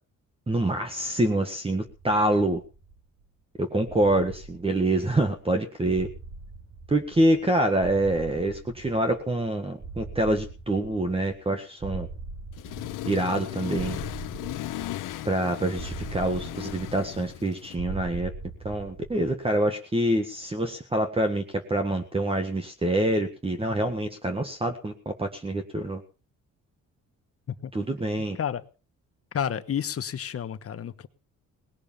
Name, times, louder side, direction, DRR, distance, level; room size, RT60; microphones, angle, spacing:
voice 1, 0.5-2.6 3.6-6.1 6.9-12.1 13.0-14.0 15.2-18.3 18.6-21.4 21.7-26.0 27.7-28.4, right 1 dB, 15° right, 1.7 m, -26 dB
sound 1, 1.9-3.2 3.8-5.4 5.8-7.5 7.8-9.4 9.8-11.5 11.8-13.4 13.8-15.3 15.8-17.4 17.8-19.4, right 3 dB, 45° right, 5.4 m, -41 dB
Accelerating revving vroom, 12.5-17.8, left 15 dB, 80° left, 1.1 m, -36 dB
voice 2, 28.3-28.7 29.3-31.1, left 8 dB, 45° left, 1.3 m, -31 dB
19.0 x 6.6 x 7.4 m
cardioid pair, 85°, 32 cm